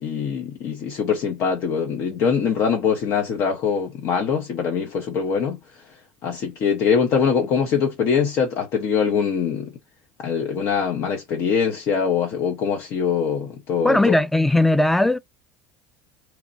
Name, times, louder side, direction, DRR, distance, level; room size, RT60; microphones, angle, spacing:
voice 1, 0.0-5.6 6.2-9.7 10.2-14.1, left 6 dB, 55° left, 0.6 m, -23 dB
voice 2, 13.8-15.2, left 1 dB, 5° left, 0.3 m, -18 dB
2.9 x 2.1 x 2.5 m
supercardioid pair, 105°, 5 cm